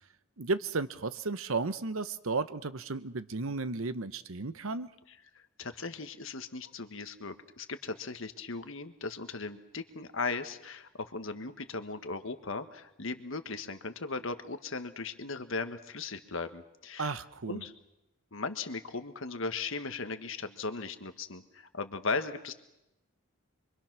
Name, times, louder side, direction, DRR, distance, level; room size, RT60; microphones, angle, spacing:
voice 1, 0.4-4.9 17.0-17.6, right 3 dB, 70° right, 13 dB, 0.9 m, -34 dB
voice 2, 5.1-17.1 17.5-17.7 18.3-22.5, left 4 dB, 65° left, 9 dB, 1.5 m, -37 dB
26.0 x 24.0 x 6.2 m, 0.90 s
head